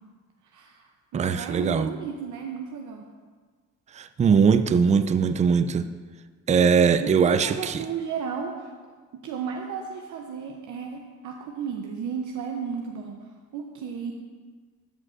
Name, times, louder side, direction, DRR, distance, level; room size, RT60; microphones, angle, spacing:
voice 1, 0.4-3.1 7.0-8.7 9.1-14.1, right 6 dB, 75° right, 1 dB, 0.7 m, -34 dB
voice 2, 1.1-1.9 4.0-5.9 6.5-7.8, right 6 dB, 25° right, 11 dB, 0.3 m, -21 dB
13.5 x 5.2 x 2.5 m, 1.5 s
cardioid pair, 90°, 30 cm